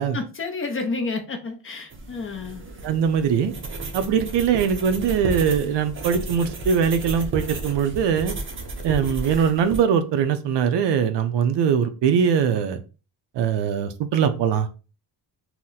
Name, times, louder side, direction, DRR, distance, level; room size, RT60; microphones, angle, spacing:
voice 1, 0.1-2.6, left 3 dB, 30° left, 0.5 m, -30 dB
sound 1, 1.9-9.8, right 2 dB, 30° right, 0.5 m, -33 dB
voice 2, 2.8-3.5 3.9-8.3 8.8-12.8 13.4-14.7, right 7 dB, 75° right, 0.6 m, -21 dB
2.8 x 2.1 x 3.8 m
cardioid pair, 135°, 43 cm